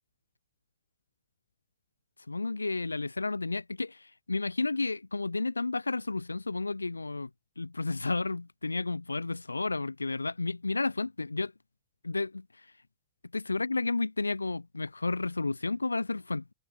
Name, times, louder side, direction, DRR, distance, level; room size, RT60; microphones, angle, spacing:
voice 1, 2.3-7.3 7.6-11.5 12.0-12.7 13.3-16.4, left 3 dB, 80° left, 0.3 m, -32 dB
open air
figure-of-eight pair, 90°, 0 cm